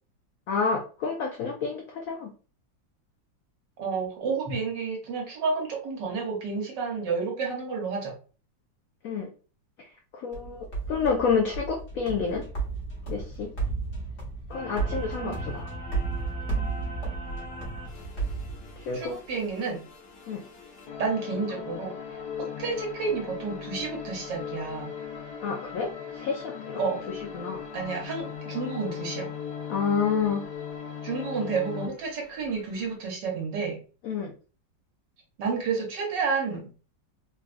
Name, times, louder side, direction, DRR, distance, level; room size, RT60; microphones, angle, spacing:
voice 1, 0.5-2.3 9.0-9.3 10.1-12.4 13.1-13.5 14.5-15.7 18.8-19.2 20.3-20.4 25.4-26.8 27.3-27.6 29.7-30.4 34.0-34.3, left 5 dB, 80° left, 1 dB, 0.7 m, -29 dB
voice 2, 3.8-8.1 15.2-15.4 18.9-19.8 21.0-22.0 22.4-24.9 26.8-27.0 27.7-29.3 31.0-33.8 35.4-36.7, right 5 dB, 70° right, 0 dB, 1.6 m, -30 dB
sound 1, 10.3-19.1, right 4 dB, 40° left, 1.2 m, -33 dB
sound 2, 14.5-33.0, left 6 dB, 65° left, 1.2 m, -39 dB
3.7 x 2.3 x 2.4 m, 0.36 s
omnidirectional pair, 2.0 m